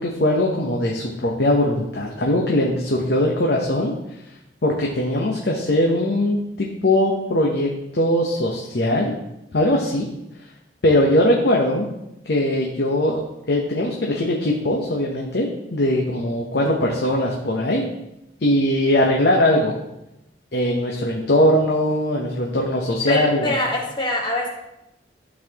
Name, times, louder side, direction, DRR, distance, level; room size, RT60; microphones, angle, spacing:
voice 1, 0.0-3.9 4.6-9.2 9.5-10.1 10.8-11.9 12.3-13.2 13.5-17.9 18.4-19.7 20.5-23.5, left 1 dB, 65° left, -1 dB, 0.8 m, -20 dB
voice 2, 23.1-24.5, left 1 dB, 25° left, -1 dB, 1.3 m, -23 dB
12.0 x 4.1 x 2.9 m, 0.88 s
head